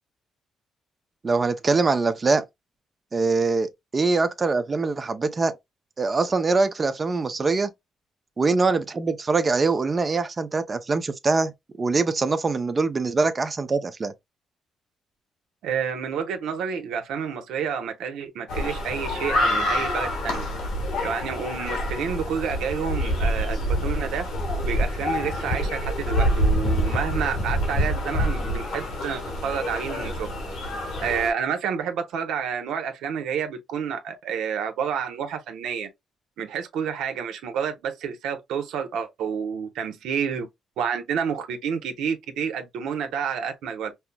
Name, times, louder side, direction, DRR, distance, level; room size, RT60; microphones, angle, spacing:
voice 1, 1.2-2.5 3.1-5.6 6.0-7.7 8.4-11.5 11.8-14.1, right 3 dB, 30° right, 0.5 m, -23 dB
voice 2, 15.6-20.5 21.0-24.2 24.6-30.3 31.0-35.9 36.4-40.5 40.8-43.9, right 7 dB, 85° right, 0.8 m, -29 dB
sound 1, 18.5-31.3, equal, 90° left, 1.4 m, -26 dB
5.4 x 2.0 x 2.2 m
cardioid pair, 90°, 0 cm